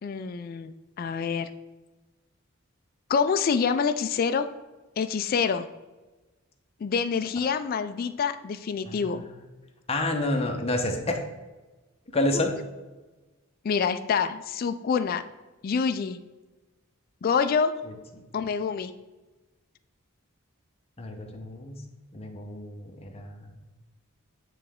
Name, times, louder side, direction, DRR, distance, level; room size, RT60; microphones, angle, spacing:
voice 1, 0.0-1.5 3.1-4.5 5.0-5.7 6.8-9.2 13.6-15.2 15.6-16.2 17.2-17.7 18.3-18.9, left 6 dB, 45° left, 9 dB, 0.3 m, -26 dB
voice 2, 8.9-9.5 9.9-11.2 12.1-12.5 17.8-17.9 21.0-21.8 22.1-23.5, left 1 dB, 30° left, 3 dB, 0.8 m, -29 dB
9.1 x 3.3 x 3.5 m, 1.2 s
head